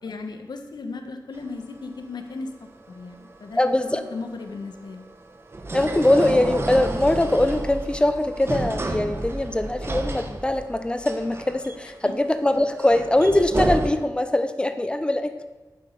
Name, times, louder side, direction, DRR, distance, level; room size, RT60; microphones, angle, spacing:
voice 1, 0.0-5.1 12.1-12.2, left 3 dB, 80° left, 6 dB, 1.2 m, -36 dB
sound 1, 1.3-13.9, right 2 dB, 35° right, 1.2 m, -31 dB
voice 2, 3.6-4.0 5.7-15.5, left 1 dB, 15° left, 9 dB, 0.8 m, -22 dB
9.0 x 8.4 x 6.8 m, 1.2 s
wide cardioid pair, 110°, 7 cm